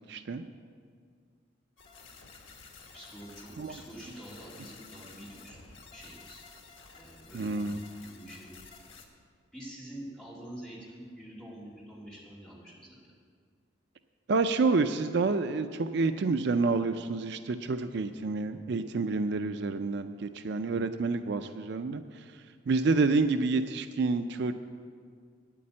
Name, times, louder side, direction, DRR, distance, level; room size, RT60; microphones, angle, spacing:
voice 1, 0.1-0.5 3.6-3.8 7.3-7.8 14.3-22.2 22.7-24.5, right 3 dB, 60° right, 9 dB, 0.4 m, -28 dB
sound 1, 1.8-9.0, left 4 dB, 80° left, 1.5 m, -52 dB
voice 2, 2.9-5.6 5.9-6.4 6.9-7.8 8.0-8.5 9.5-13.1, right 1 dB, 5° left, -6 dB, 2.7 m, -46 dB
9.2 x 8.5 x 8.6 m, 2.1 s
head